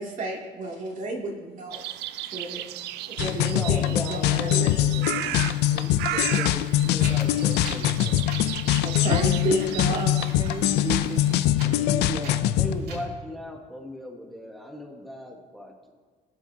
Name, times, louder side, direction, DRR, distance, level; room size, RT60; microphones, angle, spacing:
voice 1, 0.0-1.8 2.3-2.6 3.1-4.7 8.8-10.1, right 2 dB, 50° right, -2 dB, 2.6 m, -31 dB
sound 1, 1.7-11.5, right 14 dB, 85° right, 0.4 m, -36 dB
sound 2, 3.2-12.7, left 13 dB, 80° left, 0.5 m, -23 dB
voice 2, 3.5-8.3 11.6-11.9 12.6-15.7, left 1 dB, ahead, 0 dB, 1.5 m, -38 dB
Wind, 6.6-13.0, right 2 dB, 70° right, 2.8 m, -41 dB
voice 3, 10.4-11.5 11.9-12.6, right 5 dB, 25° right, 9 dB, 0.5 m, -35 dB
21.0 x 7.3 x 2.8 m, 1.4 s
cardioid pair, 110°, 17 cm